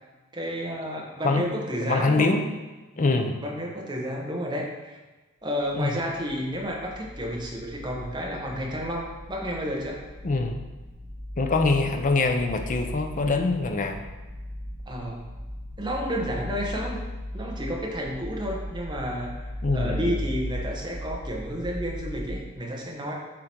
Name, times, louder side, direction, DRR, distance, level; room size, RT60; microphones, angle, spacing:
voice 1, 0.3-2.3 2.9-3.0 3.4-5.0 5.4-10.0 14.8-15.2 15.8-17.0 17.3-23.1, equal, 20° right, -2 dB, 1.1 m, -31 dB
voice 2, 1.8-2.4 3.0-3.4 5.8-5.9 10.2-10.6 11.4-14.0 19.6-20.2, left 3 dB, 35° left, 5 dB, 0.6 m, -24 dB
sound 1, 6.1-22.4, left 1 dB, 80° right, 1.1 m, -37 dB
7.4 x 3.9 x 4.5 m, 1.2 s
head